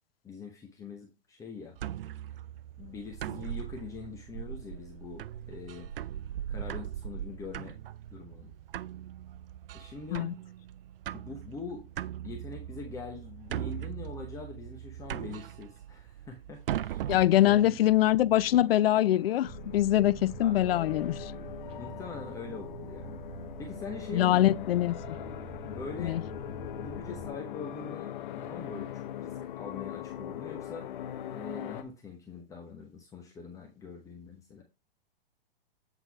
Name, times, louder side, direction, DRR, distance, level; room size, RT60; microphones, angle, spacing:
voice 1, 0.2-1.7 2.8-5.9 6.5-7.7 8.1-8.5 9.7-10.3 11.1-11.9 12.2-17.1 17.4-17.7 20.4-20.5 21.8-23.2 23.6-24.6 25.6-26.2 26.8-30.9 31.3-34.6, left 4 dB, 10° left, 0.9 m, -43 dB
sound 1, 1.8-18.6, right 11 dB, 65° right, 0.5 m, -40 dB
voice 2, 17.1-21.3 24.1-25.2 26.0-26.2, left 13 dB, 75° left, 0.5 m, -24 dB
sound 2, 18.4-31.8, left 11 dB, 55° left, 0.9 m, -41 dB
sound 3, 19.4-27.3, right 4 dB, 20° right, 0.9 m, -44 dB
8.2 x 4.0 x 4.5 m
hypercardioid pair, 150°, 30 cm